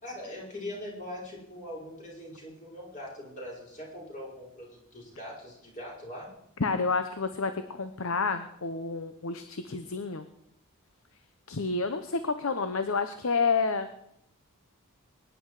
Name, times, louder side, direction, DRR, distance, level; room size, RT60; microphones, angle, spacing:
voice 1, 0.0-6.3, left 1 dB, 35° left, -3 dB, 5.3 m, -41 dB
voice 2, 6.6-10.3 11.5-13.9, left 4 dB, 65° left, 9 dB, 0.8 m, -29 dB
22.5 x 10.5 x 4.9 m, 0.77 s
head